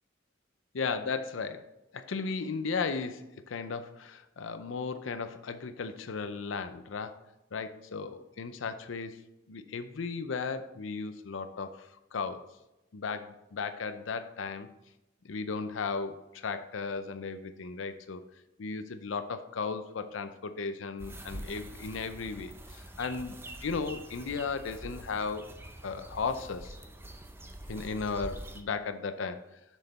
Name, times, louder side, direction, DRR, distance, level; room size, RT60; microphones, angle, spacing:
voice 1, 0.7-7.2 7.5-9.2 9.5-12.4 12.9-14.7 15.2-18.2 18.6-25.5 25.8-26.7 27.7-29.4, left 4 dB, 80° left, 10 dB, 0.5 m, -35 dB
sound 1, 21.0-28.6, right 1 dB, 10° right, 0.6 m, -45 dB
6.6 x 6.4 x 4.1 m, 0.93 s
head